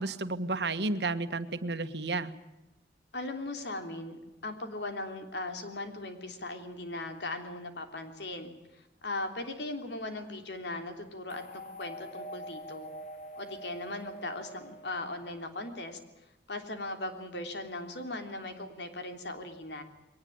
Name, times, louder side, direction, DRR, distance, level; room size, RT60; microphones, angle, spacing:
voice 1, 0.0-2.3, right 3 dB, 75° right, 10 dB, 1.5 m, -32 dB
voice 2, 3.1-12.9 13.3-16.0 16.5-19.8, left 2 dB, 80° left, 6 dB, 3.3 m, -39 dB
sound 1, 11.3-15.5, equal, 45° left, 2.7 m, -45 dB
22.0 x 19.0 x 8.8 m, 0.99 s
head